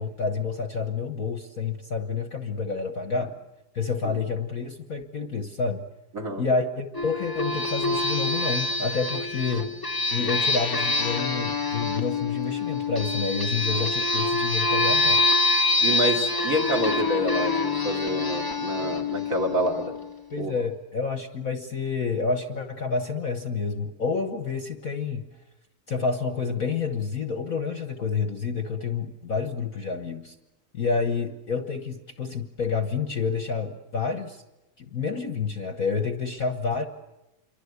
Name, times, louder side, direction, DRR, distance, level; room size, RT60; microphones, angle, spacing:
voice 1, 0.0-3.3 3.7-5.9 6.4-9.7 10.1-15.2 20.3-25.3 25.9-30.3 30.7-34.4 34.8-36.9, left 5 dB, 45° left, 7 dB, 1.5 m, -29 dB
sound 1, 6.9-20.2, left 3 dB, 15° left, 0.8 m, -26 dB
voice 2, 15.8-19.9 20.4-20.5, equal, 40° right, 1 dB, 3.3 m, -28 dB
27.5 x 24.0 x 8.2 m, 0.95 s
omnidirectional pair, 2.2 m